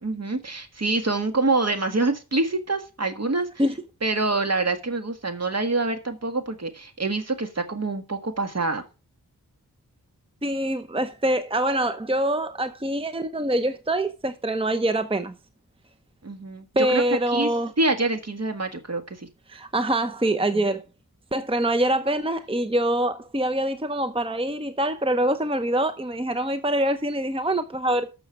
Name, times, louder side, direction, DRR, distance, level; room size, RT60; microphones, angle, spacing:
voice 1, 0.0-3.5 4.0-8.8 16.2-17.0 17.3-17.5 17.8-19.3, right 3 dB, 45° right, 1.7 m, -26 dB
voice 2, 10.4-15.3 16.8-17.7 19.5-20.8 21.3-28.1, right 1 dB, 15° right, 0.7 m, -24 dB
13.0 x 6.4 x 4.7 m
wide cardioid pair, 65°, 35 cm